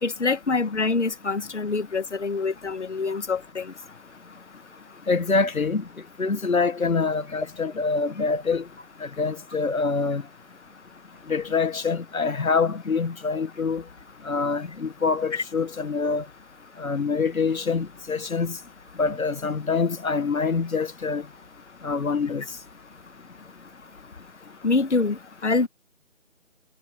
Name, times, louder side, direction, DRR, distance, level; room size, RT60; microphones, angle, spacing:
voice 1, 0.0-3.7 15.3-15.4 24.6-25.7, left 4 dB, 55° left, 2.2 m, -25 dB
voice 2, 5.1-5.8 6.2-8.6 9.0-10.2 11.3-13.8 14.2-16.2 16.8-18.6 19.0-21.2 21.8-22.4, left 4 dB, 85° left, 1.6 m, -25 dB
figure-of-eight pair, 165°, 41 cm